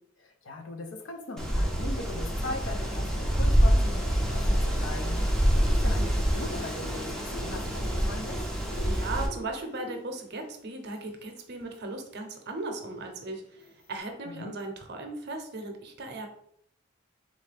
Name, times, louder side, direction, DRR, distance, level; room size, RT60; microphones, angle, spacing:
voice 1, 0.2-8.4 14.2-14.6, left 2 dB, 65° left, 5 dB, 0.6 m, -39 dB
sound 1, 1.2-1.7 2.0-4.1 4.4-10.5 10.7-10.8 11.0-11.1 11.7-14.0, equal, 80° left, 1.4 m, -46 dB
Wind, 1.4-9.3, equal, 5° left, 0.5 m, -26 dB
voice 2, 8.8-16.3, right 2 dB, 50° right, 4 dB, 0.7 m, -37 dB
3.8 x 3.1 x 3.4 m, 0.72 s
head